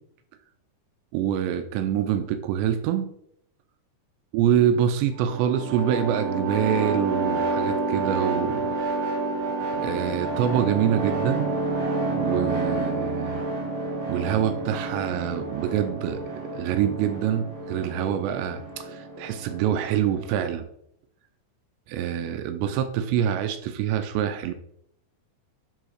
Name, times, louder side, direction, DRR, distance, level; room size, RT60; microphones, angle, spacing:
voice 1, 1.1-3.1 4.3-8.7 9.8-11.5 12.2-13.4 14.1-16.2 16.5-20.7 21.9-24.5, right 9 dB, 85° right, 8 dB, 2.9 m, -25 dB
sound 1, 5.1-20.6, right 3 dB, 60° right, 3.9 m, -29 dB
10.5 x 4.0 x 6.5 m, 0.73 s
omnidirectional pair, 5.1 m